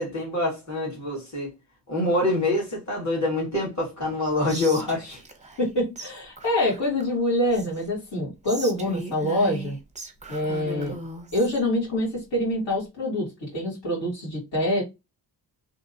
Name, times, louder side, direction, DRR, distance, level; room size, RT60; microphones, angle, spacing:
voice 1, 0.0-1.5 1.9-5.2 10.6-10.9, left 2 dB, 40° left, 1.9 m, -26 dB
Whispering, 4.5-5.7 6.0-6.1 6.4-7.9 8.4-11.6, right 3 dB, 15° right, 0.5 m, -38 dB
voice 2, 5.6-9.8 10.3-10.9 11.3-14.8, left 1 dB, 70° left, 2.2 m, -25 dB
3.5 x 2.8 x 2.7 m
wide cardioid pair, 145°, 44 cm